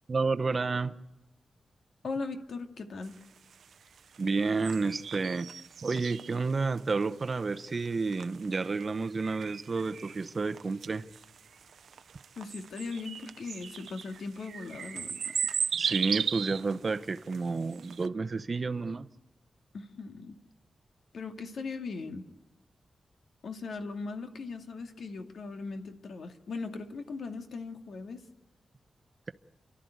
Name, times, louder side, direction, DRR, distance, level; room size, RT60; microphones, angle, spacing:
voice 1, 0.1-0.9 4.2-5.5 5.8-11.0 15.7-19.1, right 4 dB, 35° right, 0.9 m, -30 dB
voice 2, 2.0-3.2 12.4-15.2 19.7-20.4 21.1-22.2 23.4-28.2, left 4 dB, 70° left, 2.2 m, -39 dB
sound 1, 3.0-18.1, right 7 dB, 80° right, 0.7 m, -37 dB
30.0 x 12.5 x 9.4 m
wide cardioid pair, 175°, 0 cm